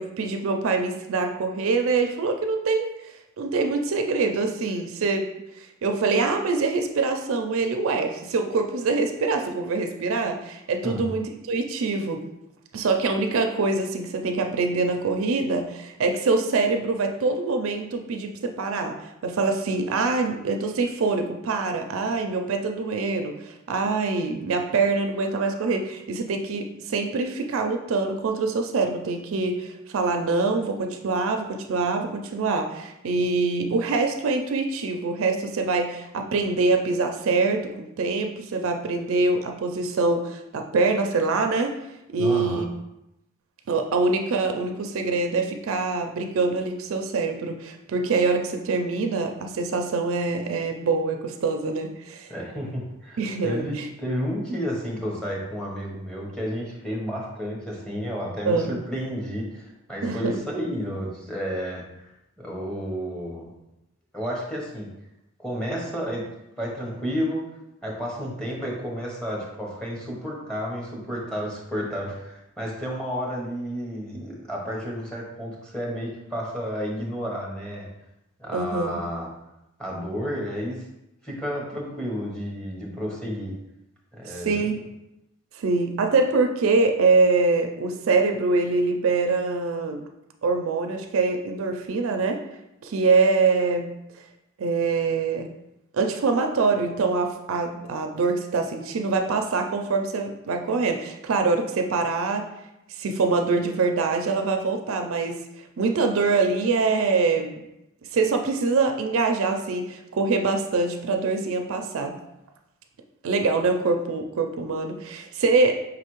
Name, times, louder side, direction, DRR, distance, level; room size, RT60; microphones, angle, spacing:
voice 1, 0.0-2.9 3.4-5.3 5.8-12.2 12.7-19.0 19.2-41.8 42.1-42.7 43.7-52.3 53.2-53.9 58.5-58.8 60.0-60.4 78.5-79.0 84.3-84.8 85.5-90.0 90.4-92.4 92.8-94.0 94.6-95.5 95.9-102.4 103.0-105.4 105.8-107.6 108.1-112.2 113.2-115.7, right 3 dB, 65° right, 5 dB, 0.4 m, -24 dB
voice 2, 42.2-42.7 52.3-62.1 62.4-63.5 64.1-64.9 65.4-66.3 66.6-67.4 67.8-77.9 78.4-79.3 79.8-80.8 81.2-83.5 84.1-84.6, equal, 5° left, -3 dB, 0.9 m, -31 dB
5.0 x 3.3 x 3.0 m, 0.89 s
head